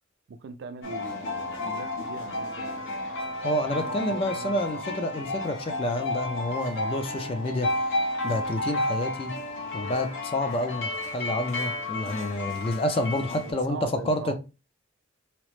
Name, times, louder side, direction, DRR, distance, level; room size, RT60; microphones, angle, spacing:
voice 1, 0.3-2.8 3.7-4.8 13.4-14.3, right 5 dB, 55° right, 0.3 m, -40 dB
sound 1, 0.8-13.5, left 1 dB, 60° left, 0.7 m, -32 dB
voice 2, 3.4-7.9 8.2-9.3 9.7-14.3, left 1 dB, 25° left, 0.3 m, -29 dB
2.9 x 2.0 x 3.0 m
head